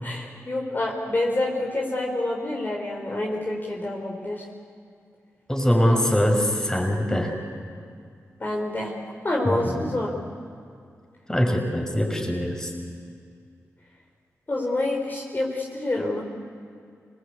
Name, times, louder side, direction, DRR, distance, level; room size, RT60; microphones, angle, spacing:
voice 1, 0.0-4.4 5.8-6.1 8.4-8.9 9.2-10.1 14.5-16.2, left 2 dB, 35° left, -2 dB, 4.3 m, -27 dB
voice 2, 5.5-7.3 9.4-9.8 11.3-12.7, equal, 10° left, 1 dB, 5.9 m, -23 dB
26.0 x 20.5 x 8.5 m, 2.3 s
cardioid pair, 55°, 6 cm